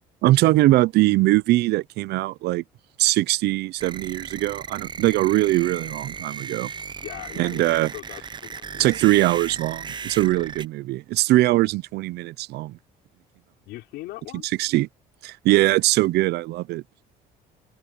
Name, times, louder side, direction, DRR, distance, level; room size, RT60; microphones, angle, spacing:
voice 1, 0.2-2.6 3.0-6.7 7.4-7.9 8.8-12.8 14.6-14.9 15.2-16.8, right 17 dB, 75° right, 0.6 m, -21 dB
sound 1, 3.8-10.7, right 6 dB, 25° right, 0.6 m, -36 dB
voice 2, 6.9-8.9 13.6-14.5, left 18 dB, 90° left, 5.6 m, -40 dB
cardioid pair, 110°, 17 cm